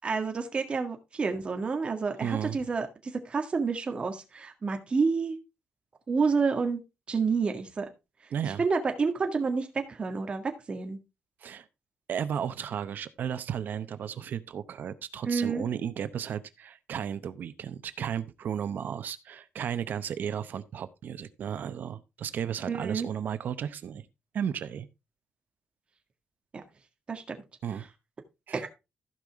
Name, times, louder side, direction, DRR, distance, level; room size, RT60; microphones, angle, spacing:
voice 1, 0.0-2.9 3.3-5.4 6.1-6.8 7.1-7.9 8.4-11.0 15.2-15.6 22.7-23.1 26.5-26.6 27.1-27.4 28.5-28.7, right 4 dB, 30° right, 1.8 m, -29 dB
voice 2, 2.2-2.6 8.3-8.6 11.4-11.7 12.1-24.0 24.3-24.9 27.6-27.9 28.5-28.6, right 8 dB, 60° right, 0.8 m, -34 dB
15.0 x 5.5 x 3.5 m
wide cardioid pair, 160°, 4 cm